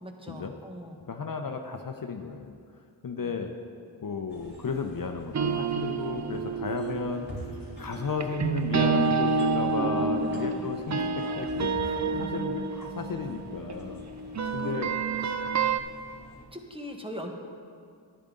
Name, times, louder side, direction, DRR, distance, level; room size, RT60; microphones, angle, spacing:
voice 1, 0.0-1.0 9.5-10.7 12.0-12.3 14.4-14.7 16.5-17.3, equal, 10° right, 2 dB, 1.4 m, -41 dB
voice 2, 1.1-2.6 3.0-3.5 4.0-14.0 14.5-14.9, left 5 dB, 45° left, 5 dB, 0.8 m, -34 dB
sound 1, 4.3-16.4, equal, 20° left, 3.0 m, -47 dB
sound 2, 5.3-15.8, right 4 dB, 35° right, 0.6 m, -29 dB
10.5 x 10.0 x 3.8 m, 2.2 s
cardioid pair, 40°, 49 cm